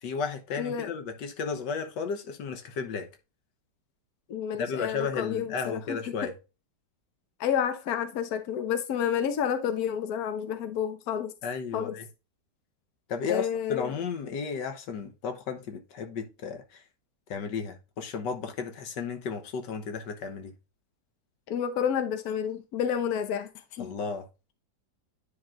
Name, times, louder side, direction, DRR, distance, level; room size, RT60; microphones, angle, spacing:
voice 1, 0.0-3.1 4.6-6.3 11.4-12.1 13.1-16.8 17.3-20.5 23.8-24.3, left 5 dB, 80° left, 1.7 m, -34 dB
voice 2, 0.6-0.9 4.3-6.3 7.4-11.3 11.7-12.0 13.3-13.9 21.5-23.9, left 8 dB, 65° left, 1.3 m, -30 dB
9.9 x 3.7 x 3.7 m
omnidirectional pair, 1.9 m